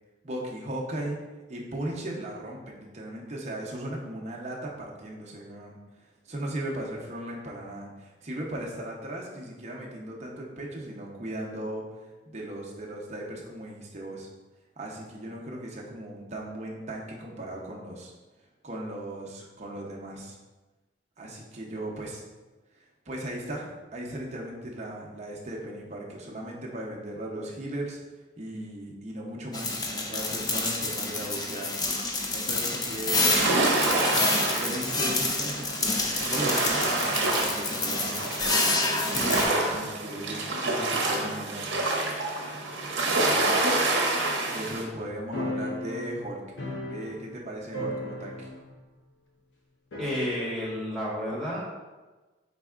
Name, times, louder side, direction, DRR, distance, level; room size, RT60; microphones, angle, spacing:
voice 1, 0.2-1.2 1.5-5.8 6.2-14.3 14.8-18.1 18.6-20.4 21.2-22.2 23.1-28.0 28.4-31.7 32.3-34.3 34.5-41.8 43.0-43.5 44.5-46.4 46.9-48.5, right 1 dB, 35° right, -2 dB, 0.7 m, -37 dB
sound 1, 29.5-39.5, left 2 dB, 20° left, 0.4 m, -28 dB
sound 2, 33.1-44.8, right 2 dB, 80° right, 0.7 m, -27 dB
sound 3, 45.3-47.5 47.7-48.7 49.0-49.1 49.9-50.7, left 1 dB, 80° left, 0.6 m, -35 dB
voice 2, 50.0-51.6, equal, 5° left, -7 dB, 1.2 m, -31 dB
4.3 x 4.0 x 2.4 m, 1.2 s
head